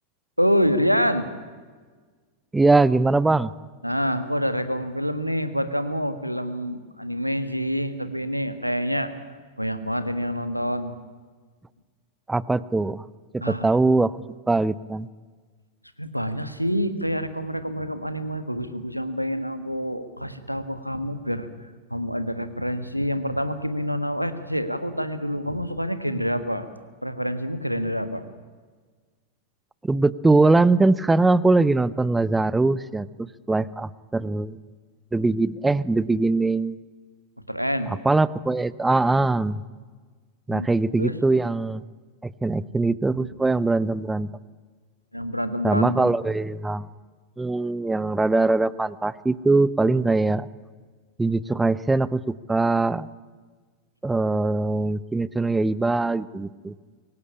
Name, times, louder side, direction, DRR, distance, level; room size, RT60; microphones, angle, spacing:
voice 1, 0.4-1.3 3.8-9.1 9.6-11.0 13.4-13.8 16.0-21.5 21.9-26.7 27.0-28.2 37.5-37.9 40.5-41.1 45.1-46.1, equal, 90° right, 11 dB, 1.5 m, -27 dB
voice 2, 2.5-3.5 12.3-13.0 13.3-14.2 14.5-15.1 29.8-34.6 35.1-36.8 37.9-39.6 40.5-41.8 42.2-44.3 45.6-46.9 47.4-50.5 51.2-53.1 54.0-56.7, right 3 dB, 10° right, 19 dB, 0.7 m, -22 dB
23.5 x 17.5 x 9.9 m, 1.5 s
figure-of-eight pair, 90°, 0 cm